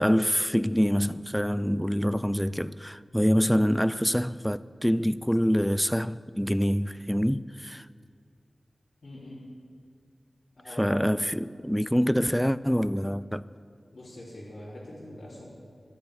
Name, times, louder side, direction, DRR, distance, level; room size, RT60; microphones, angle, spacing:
voice 1, 0.0-7.9 10.8-13.4, equal, ahead, 0.4 m, -25 dB
voice 2, 9.0-9.4 10.6-11.0 13.9-15.5, left 1 dB, 70° left, 3.9 m, -43 dB
13.0 x 10.0 x 9.0 m
wide cardioid pair, 65°, 0 cm